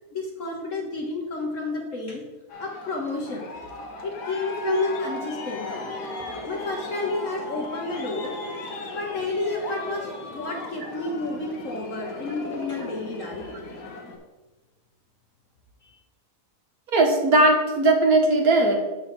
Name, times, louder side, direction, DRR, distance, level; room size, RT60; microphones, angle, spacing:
voice 1, 0.1-2.2 2.6-3.4 4.0-5.9 6.5-13.8 15.8-15.9, left 3 dB, 50° left, 0 dB, 1.4 m, -31 dB
Aircraft, 2.5-14.2, left 2 dB, 80° left, 1.8 m, -36 dB
voice 2, 16.9-18.8, right 2 dB, 60° right, 1 dB, 1.7 m, -19 dB
7.9 x 4.8 x 6.0 m, 1.1 s
omnidirectional pair, 1.8 m